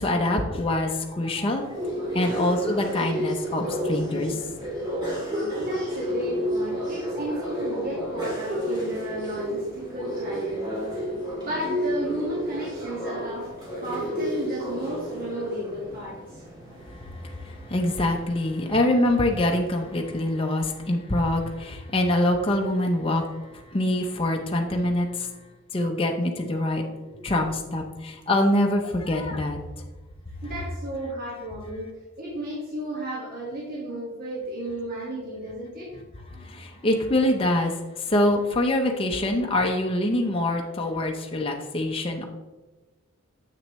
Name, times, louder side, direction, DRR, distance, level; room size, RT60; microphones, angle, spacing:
voice 1, 0.0-1.7 2.1-4.4 16.9-25.4 25.7-26.8 27.2-29.6 36.3-42.3, left 1 dB, 25° left, 2 dB, 0.6 m, -25 dB
sound 1, 1.5-20.3, equal, 20° right, 2.2 m, -32 dB
voice 2, 2.2-2.5 5.6-10.7 11.3-13.5 13.8-16.4 27.1-27.2 30.4-31.9 32.2-36.0, right 1 dB, 45° right, -6 dB, 1.7 m, -33 dB
7.6 x 6.5 x 3.1 m, 1.2 s
head